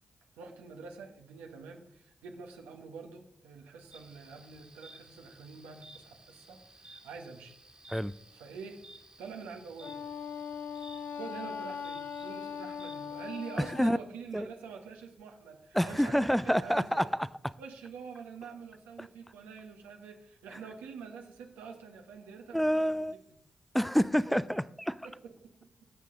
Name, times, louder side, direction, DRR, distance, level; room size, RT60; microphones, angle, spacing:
voice 1, 0.4-7.6 8.3-8.8 9.2-10.0 10.8-17.1 17.6-22.9 24.3-24.4 25.0-25.8, right 5 dB, 90° right, 4 dB, 1.1 m, -46 dB
sound 1, 3.9-13.7, right 2 dB, 35° right, 1.7 m, -55 dB
Wind instrument woodwind instrument, 9.8-14.0, left 7 dB, 70° left, 0.4 m, -40 dB
voice 2, 15.7-17.1 22.5-23.1 23.7-25.1, equal, 5° left, 17 dB, 0.4 m, -27 dB
12.5 x 6.7 x 3.8 m, 0.73 s
supercardioid pair, 45°, 3 cm